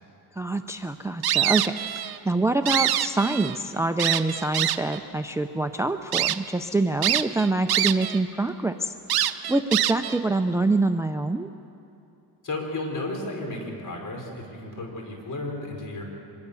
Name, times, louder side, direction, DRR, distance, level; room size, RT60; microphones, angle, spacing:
voice 1, 0.3-11.5, right 2 dB, 5° right, 9 dB, 0.5 m, -26 dB
sound 1, 1.2-2.2 2.5-3.6 4.0-5.0 5.6-5.7 6.1-6.4 7.0-8.2 8.5-8.6 9.1-10.2, right 12 dB, 60° right, 0.9 m, -24 dB
voice 2, 12.4-16.0, left 2 dB, 45° left, 2 dB, 5.1 m, -33 dB
24.0 x 21.5 x 7.0 m, 2.8 s
cardioid pair, 110°, 42 cm